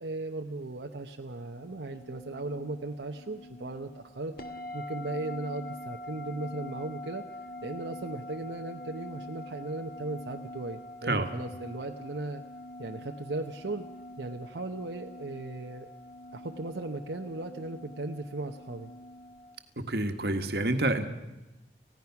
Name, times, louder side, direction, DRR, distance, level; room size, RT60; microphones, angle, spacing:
voice 1, 0.0-7.2 7.6-12.4 12.8-13.8 14.2-15.9 16.3-18.9, right 2 dB, 80° right, 3 dB, 1.0 m, -37 dB
sound 1, 1.6-19.6, left 1 dB, 55° left, 1.8 m, -45 dB
voice 2, 19.8-21.1, right 2 dB, 60° right, 7 dB, 1.6 m, -28 dB
29.0 x 16.0 x 5.9 m, 1.0 s
head